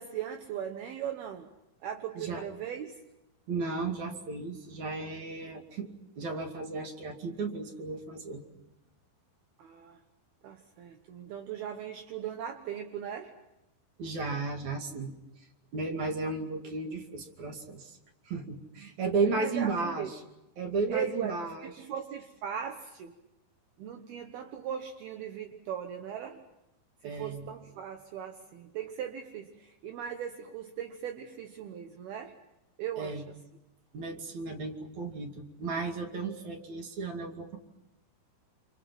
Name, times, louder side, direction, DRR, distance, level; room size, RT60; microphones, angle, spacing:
voice 1, 0.0-1.5 1.8-3.0 9.6-10.0 10.4-13.4 19.4-20.1 20.9-23.2 23.8-26.5 27.0-32.4 32.8-33.2, right 9 dB, 70° right, 5 dB, 2.9 m, -38 dB
voice 2, 3.5-8.4 14.0-15.1 15.7-18.0 18.3-20.2 20.6-21.7 27.0-27.5 33.0-33.2 33.9-37.6, right 3 dB, 45° right, 4 dB, 3.4 m, -34 dB
28.5 x 27.5 x 6.1 m, 0.91 s
omnidirectional pair, 5.0 m